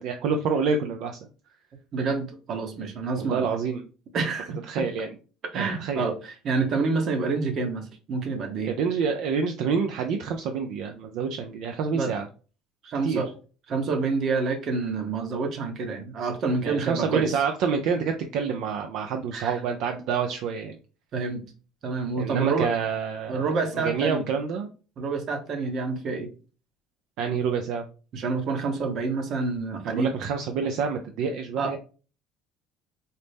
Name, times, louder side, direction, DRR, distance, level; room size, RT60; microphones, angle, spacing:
voice 1, 0.0-1.2 3.2-3.8 4.7-5.1 5.5-6.0 8.7-12.3 13.0-13.2 16.6-20.8 22.2-23.5 23.8-24.7 27.2-27.8 29.8-31.8, right 6 dB, 70° right, 5 dB, 0.4 m, -27 dB
voice 2, 1.9-3.5 4.1-4.9 5.5-8.7 11.9-12.1 12.8-13.3 13.7-17.4 19.3-19.6 21.1-21.4 21.8-22.7 23.3-24.3 25.0-26.3 28.1-30.1 31.6-31.8, right 4 dB, 50° right, 6 dB, 0.9 m, -28 dB
4.0 x 2.0 x 3.3 m, 0.36 s
supercardioid pair, 95°, 0 cm